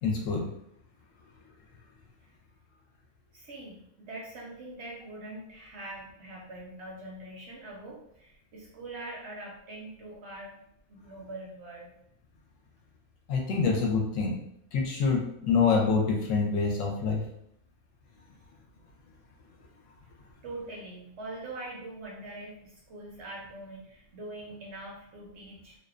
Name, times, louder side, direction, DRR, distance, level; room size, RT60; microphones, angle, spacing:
voice 1, 0.0-0.5 13.3-14.3 14.7-17.2, left 5 dB, 70° left, 0 dB, 0.9 m, -26 dB
voice 2, 3.3-10.6 10.9-11.9 18.4-18.5 19.6-19.7 20.4-25.8, right 2 dB, 65° right, -3 dB, 0.7 m, -43 dB
2.5 x 2.1 x 2.4 m, 0.73 s
omnidirectional pair, 1.5 m